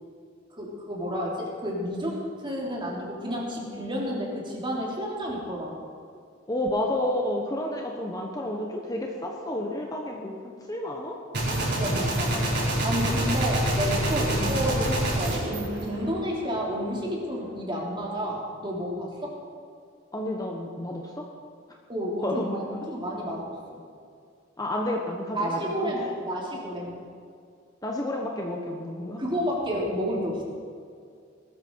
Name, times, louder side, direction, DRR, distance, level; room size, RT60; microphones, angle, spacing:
voice 1, 0.5-5.7 11.4-12.6 12.8-19.3 21.9-23.8 25.3-27.0 29.2-30.4, equal, 25° right, -3 dB, 3.4 m, -31 dB
voice 2, 6.5-11.2 12.0-12.6 20.1-21.3 22.2-22.8 24.6-25.9 27.8-29.2, left 1 dB, 20° left, 0 dB, 1.3 m, -31 dB
Gunshot gunfire, 11.3-16.6, right 1 dB, 55° right, 5.1 m, -26 dB
20.0 x 13.5 x 4.8 m, 2.3 s
head